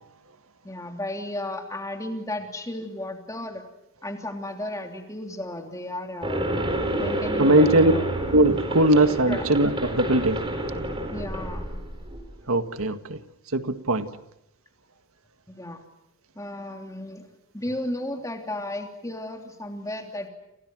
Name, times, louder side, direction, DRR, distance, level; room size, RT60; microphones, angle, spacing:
voice 1, 0.6-3.6 4.0-6.5 7.0-8.0 9.3-9.4 11.1-11.8 15.5-15.8 16.3-17.3 17.5-20.3, left 1 dB, 15° left, 3 dB, 3.1 m, -34 dB
sound 1, 6.2-12.3, right 1 dB, 25° right, 4.4 m, -29 dB
voice 2, 7.4-7.9 8.3-10.4 12.5-13.2 13.5-14.2, right 1 dB, 80° right, 9 dB, 1.8 m, -20 dB
29.5 x 28.0 x 6.3 m, 0.85 s
head